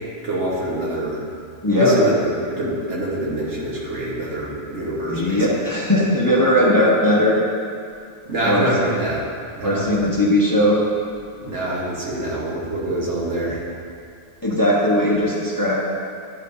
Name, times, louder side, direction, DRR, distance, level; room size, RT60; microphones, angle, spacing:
voice 1, 0.2-1.2 1.8-5.5 8.3-9.2 9.5-9.9 11.4-13.6, right 1 dB, 85° right, -5 dB, 1.7 m, -25 dB
voice 2, 1.6-1.9 5.1-7.4 8.4-8.7 9.6-10.8 14.4-15.7, left 1 dB, 20° left, -5 dB, 0.8 m, -18 dB
11.0 x 5.0 x 2.7 m, 2.3 s
omnidirectional pair, 1.2 m